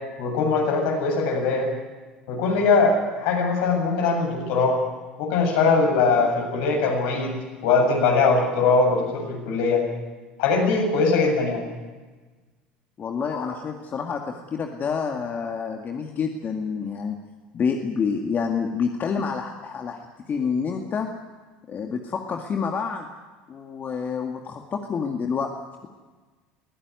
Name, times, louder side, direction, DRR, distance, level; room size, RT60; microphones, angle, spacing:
voice 1, 0.2-1.7 2.3-4.8 5.2-9.8 10.4-11.6 13.3-13.5, left 4 dB, 70° left, 1 dB, 7.5 m, -21 dB
voice 2, 13.0-17.2 17.5-20.0 20.3-21.1 21.7-23.1 23.5-25.5, left 6 dB, 40° left, 3 dB, 2.1 m, -28 dB
21.5 x 16.0 x 9.7 m, 1.3 s
hypercardioid pair, 75°, 5 cm